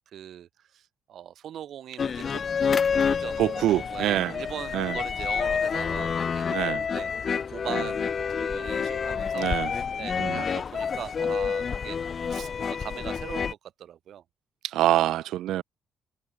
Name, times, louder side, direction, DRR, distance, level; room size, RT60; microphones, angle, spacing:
voice 1, 0.1-3.4 3.9-8.1 8.4-12.0 12.3-14.2, right 10 dB, 70° right, 7.2 m, -40 dB
sound 1, 2.0-13.5, left 6 dB, 45° left, 7.6 m, -28 dB
voice 2, 3.4-4.3 4.7-5.0 6.5-6.8 9.3-9.7 10.2-10.4 14.6-15.6, right 14 dB, 85° right, 4.8 m, -25 dB
cardioid pair, 90°, 0 cm